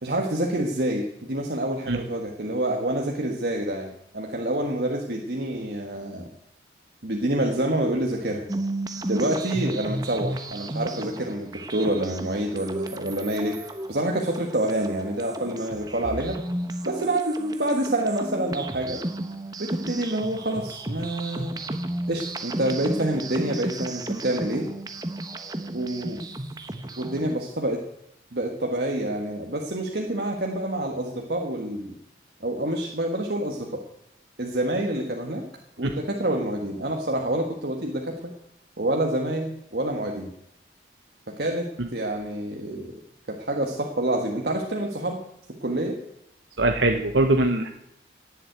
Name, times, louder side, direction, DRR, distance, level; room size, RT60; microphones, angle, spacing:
voice 1, 0.0-6.3 7.0-8.4 9.0-13.6 13.9-16.4 16.8-19.0 19.6-21.5 22.1-24.6 25.7-26.2 27.0-27.8 28.3-31.9 32.4-33.8 34.4-35.5 35.8-38.3 38.8-40.3 41.4-41.7 41.9-43.0 43.3-45.2 45.6-46.0, right 1 dB, 60° right, 1 dB, 1.6 m, -27 dB
sound 1, 8.5-27.4, right 1 dB, 20° right, 1.0 m, -33 dB
voice 2, 46.6-47.7, right 2 dB, 85° right, 4 dB, 1.2 m, -22 dB
17.0 x 7.7 x 9.2 m, 0.77 s
head